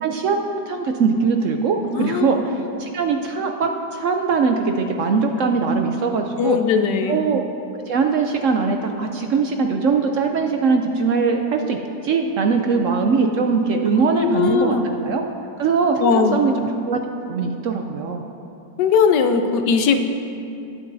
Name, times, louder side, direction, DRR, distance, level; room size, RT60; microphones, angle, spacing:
voice 1, 0.0-6.6 7.1-7.4 7.9-15.2 15.6-17.0 17.3-18.2, right 4 dB, 65° right, 4 dB, 0.8 m, -21 dB
voice 2, 1.9-2.4 6.4-7.2 13.9-14.9 16.0-16.5 18.8-20.1, left 5 dB, 85° left, 7 dB, 1.3 m, -19 dB
19.5 x 8.6 x 2.7 m, 2.7 s
omnidirectional pair, 1.8 m